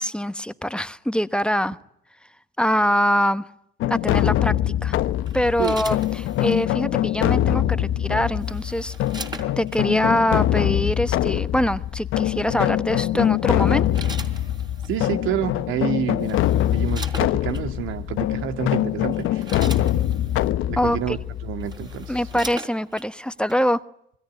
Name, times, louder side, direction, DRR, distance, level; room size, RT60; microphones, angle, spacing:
voice 1, 0.0-1.8 2.6-3.4 3.9-5.0 5.3-8.9 9.6-13.9 20.8-21.2 22.1-23.8, equal, 5° left, 12 dB, 1.1 m, -24 dB
sound 1, 3.8-22.5, left 13 dB, 90° left, 1.0 m, -24 dB
sound 2, 5.3-6.6 8.0-9.8 10.9-11.1 12.8-13.1 13.6-15.0 15.8-15.9 16.2-17.7 18.4-18.6 19.0-20.5 21.2-21.3 21.5-23.1 23.5-23.6, right 2 dB, 20° right, 3.8 m, -39 dB
voice 2, 14.9-19.4 20.7-22.2, right 9 dB, 90° right, 9 dB, 1.9 m, -29 dB
27.5 x 20.5 x 9.2 m, 0.76 s
cardioid pair, 90°, 20 cm